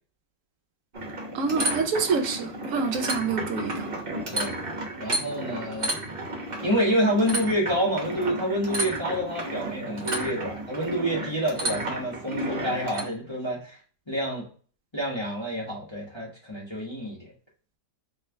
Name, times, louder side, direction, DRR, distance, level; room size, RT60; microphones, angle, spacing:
sound 1, 0.9-13.0, right 1 dB, 35° right, 1.1 m, -32 dB
voice 1, 1.3-3.9, right 5 dB, 60° right, 0.9 m, -27 dB
voice 2, 5.0-6.0 6.6-13.8 14.1-14.5 14.9-17.3, equal, 20° left, 0.9 m, -28 dB
3.3 x 3.1 x 3.2 m
omnidirectional pair, 1.9 m